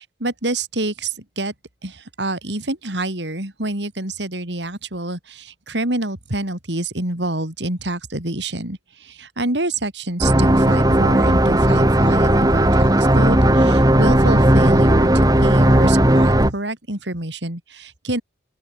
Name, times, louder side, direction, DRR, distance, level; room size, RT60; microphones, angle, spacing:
voice 1, 0.0-1.5 1.8-18.2, right 2 dB, 70° right, 4.6 m, -27 dB
sound 1, 10.2-16.5, right 1 dB, 20° right, 2.4 m, -15 dB
open air
head